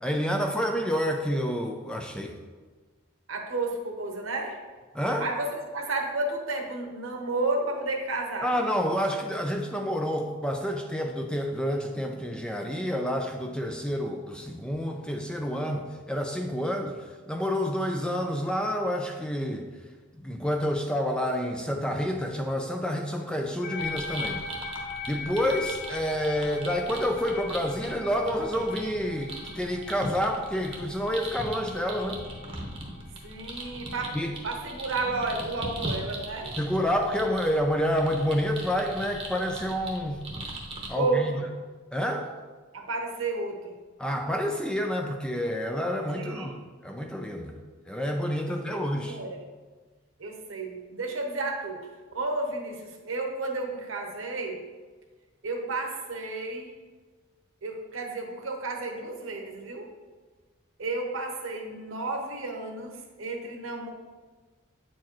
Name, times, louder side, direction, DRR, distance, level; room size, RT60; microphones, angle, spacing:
voice 1, 0.0-2.4 4.9-5.3 8.4-17.0 17.3-19.7 20.2-24.4 25.1-32.2 34.1-34.3 36.6-40.2 40.9-41.5 41.9-42.3 44.0-46.5 46.8-47.6 47.9-49.2, equal, 5° left, 3 dB, 0.4 m, -28 dB
voice 2, 3.3-4.6 5.2-8.5 33.2-34.2 34.4-36.5 41.0-41.4 42.7-43.7 46.1-46.5 48.5-49.4 50.2-51.9 52.1-54.6 55.4-56.7 57.6-59.9 60.8-63.9, right 2 dB, 75° right, 2 dB, 1.0 m, -32 dB
sound 1, 23.6-34.2, left 4 dB, 50° left, 0.7 m, -40 dB
sound 2, 23.8-40.9, right 1 dB, 25° right, 0.9 m, -40 dB
8.4 x 4.6 x 3.0 m, 1.4 s
head